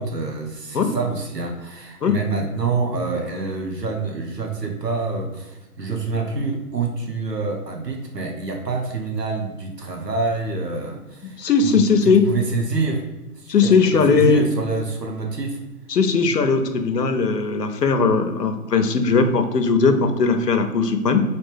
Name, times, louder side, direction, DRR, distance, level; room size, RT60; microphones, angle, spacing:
voice 1, 0.0-13.0 13.4-15.6, right 4 dB, 90° right, 2 dB, 1.1 m, -27 dB
voice 2, 11.4-12.2 13.5-14.5 15.9-21.2, left 4 dB, 80° left, 7 dB, 0.8 m, -18 dB
4.0 x 3.4 x 3.4 m, 1.1 s
figure-of-eight pair, 140°, 47 cm